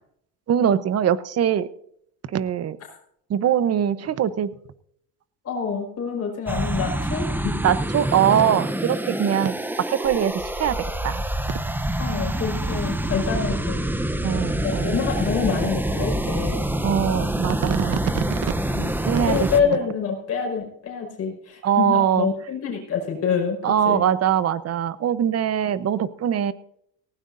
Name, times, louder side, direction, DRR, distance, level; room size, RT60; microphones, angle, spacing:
voice 1, 0.5-1.7 2.3-2.8 3.3-4.5 7.6-11.2 14.2-15.0 16.8-18.4 19.0-19.8 21.6-22.3 23.6-26.5, right 9 dB, 40° right, 15 dB, 0.9 m, -22 dB
voice 2, 5.4-7.5 12.0-13.9 14.6-16.7 18.7-18.9 19.3-23.6 23.8-24.0, left 6 dB, 40° left, 1 dB, 4.9 m, -26 dB
sound 1, 6.5-19.6, right 1 dB, 5° right, 0.7 m, -26 dB
19.0 x 16.5 x 2.6 m, 0.70 s
cardioid pair, 115°, 39 cm